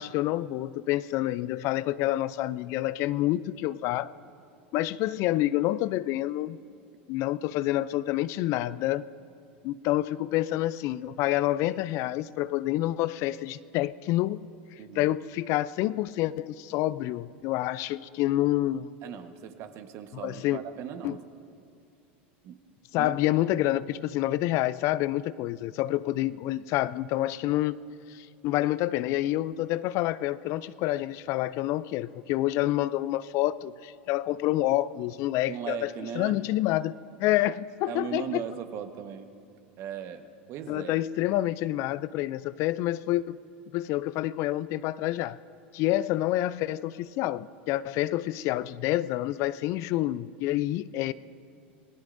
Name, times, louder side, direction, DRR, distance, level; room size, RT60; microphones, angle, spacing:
voice 1, 0.0-4.1 4.7-6.6 7.1-9.0 9.6-14.5 15.0-18.9 20.2-20.6 21.0-21.2 22.9-27.7 28.1-35.9 36.1-36.9 37.2-38.4 40.7-43.4 43.7-45.4 45.7-51.1, left 15 dB, 55° left, 17 dB, 0.4 m, -28 dB
voice 2, 14.8-15.1 19.0-21.2 22.4-22.6 23.0-23.2 35.5-36.4 37.9-39.3 39.8-40.9, right 9 dB, 50° right, 7 dB, 1.3 m, -38 dB
28.0 x 18.0 x 2.6 m, 2.4 s
hypercardioid pair, 100°, 6 cm